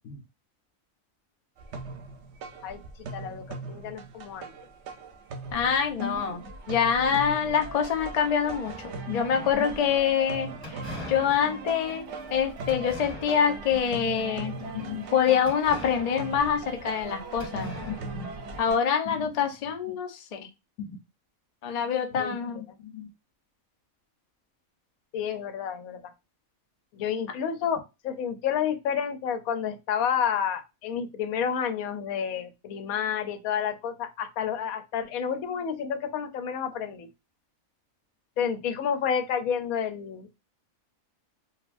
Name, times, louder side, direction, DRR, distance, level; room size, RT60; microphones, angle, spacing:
sound 1, 1.6-18.8, right 4 dB, 65° right, 0.8 m, -39 dB
voice 1, 2.6-4.5 6.0-6.5 9.1-9.8 14.6-15.1 17.5-18.3 19.1-19.3 20.8-21.0 22.2-23.1 25.1-26.1 26.9-37.1 38.4-40.3, left 8 dB, 85° left, 9 dB, 1.0 m, -31 dB
voice 2, 5.5-6.4 6.7-10.8 11.1-14.6 15.1-17.7 18.6-20.5 21.6-22.6, left 7 dB, 70° left, 5 dB, 0.3 m, -25 dB
sound 2, 8.6-9.4 10.6-13.7 14.1-14.5 15.5-17.1 17.4-18.7, left 2 dB, 30° left, 1.9 m, -44 dB
4.0 x 2.2 x 2.4 m, 0.24 s
omnidirectional pair, 1.4 m